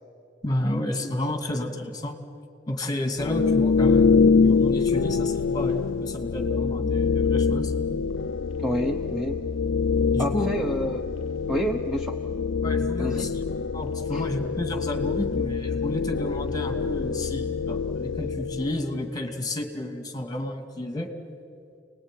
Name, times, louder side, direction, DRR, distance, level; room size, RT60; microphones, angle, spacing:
voice 1, 0.4-2.2 2.7-4.1 4.4-7.7 10.1-10.5 12.6-13.4 13.7-21.1, left 1 dB, 20° left, 5 dB, 2.5 m, -31 dB
sound 1, 3.2-19.0, left 5 dB, 85° left, 0.5 m, -25 dB
voice 2, 8.6-9.4 10.2-11.0 11.5-12.2 13.0-13.3 14.1-14.3, equal, ahead, 3 dB, 1.0 m, -29 dB
29.0 x 20.5 x 9.2 m, 2.5 s
head